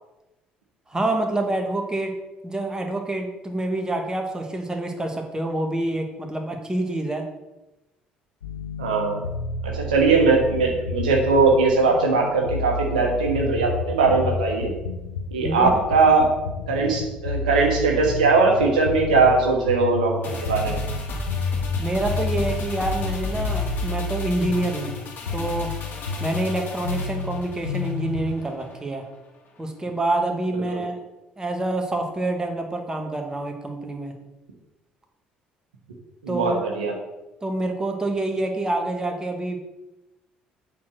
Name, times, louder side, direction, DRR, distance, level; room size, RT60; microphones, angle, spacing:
voice 1, 0.9-2.1 2.4-7.3 15.4-15.7 21.8-24.9 25.3-25.7 26.2-29.1 29.6-31.0 31.4-34.1 36.3-36.6 37.4-39.6, right 2 dB, 15° right, 2 dB, 1.7 m, -27 dB
sound 1, 8.4-28.3, left 4 dB, 85° left, 0.5 m, -31 dB
voice 2, 8.8-9.2 9.6-14.7 15.3-16.3 16.7-20.8 36.2-36.9, right 4 dB, 80° right, 0 dB, 1.3 m, -20 dB
sound 2, 20.2-28.8 29.1-29.2, equal, 50° left, 2.1 m, -34 dB
8.2 x 4.5 x 6.4 m, 1.0 s
figure-of-eight pair, 50°, 4 cm